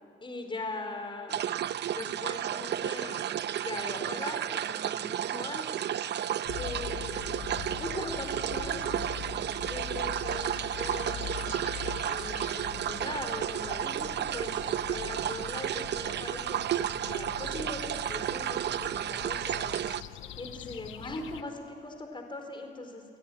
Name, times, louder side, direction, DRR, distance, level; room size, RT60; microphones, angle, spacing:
voice 1, 0.2-1.4 1.9-5.7 6.6-7.4 7.8-9.1 9.7-11.6 12.0-20.0 20.4-23.0, left 2 dB, 25° left, 4 dB, 4.4 m, -40 dB
sound 1, 1.3-20.0, right 10 dB, 60° right, 0.6 m, -32 dB
sound 2, 6.4-21.4, left 10 dB, 85° left, 1.1 m, -43 dB
29.0 x 18.5 x 9.8 m, 2.4 s
cardioid pair, 90°, 20 cm